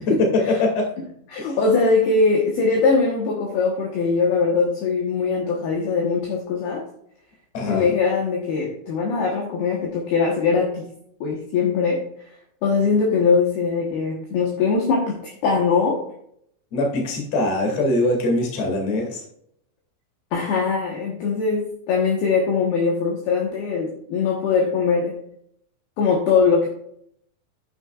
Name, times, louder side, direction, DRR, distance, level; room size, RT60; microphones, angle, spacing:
voice 1, 0.5-0.9 1.4-1.6 7.5-7.9 16.7-19.2, left 1 dB, 40° left, 0 dB, 2.8 m, -23 dB
voice 2, 1.3-6.9 7.6-10.9 11.2-12.1 12.6-16.0 20.3-25.2 26.0-26.7, left 4 dB, 65° left, -1 dB, 2.8 m, -21 dB
9.8 x 9.2 x 2.4 m, 0.70 s
omnidirectional pair, 5.6 m